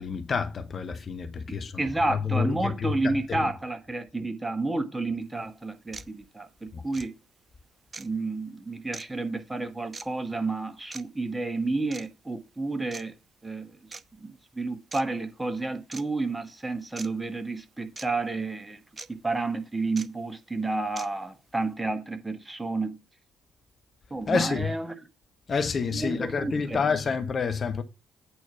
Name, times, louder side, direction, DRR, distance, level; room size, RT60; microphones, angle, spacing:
voice 1, 0.0-3.5 6.7-6.8 24.3-24.7 25.5-27.8, left 5 dB, 40° left, 1.0 m, -28 dB
voice 2, 1.5-7.1 8.0-13.1 13.4-13.8 14.2-18.8 19.1-23.0 24.1-24.9 25.9-26.8, right 2 dB, 15° right, 1.5 m, -31 dB
sound 1, 5.2-5.3 5.9-6.1 6.9-7.1 7.9-8.1 8.9-9.1 9.9-10.1 10.9-11.0 11.9-12.1 12.9-13.0 13.9-14.0 14.9-15.0 15.9-16.0 17.0-17.1 18.0-18.1 19.0-19.1 20.0-20.1 21.0-21.1, right 4 dB, 30° right, 0.7 m, -40 dB
8.7 x 4.5 x 5.7 m
figure-of-eight pair, 45°, 0 cm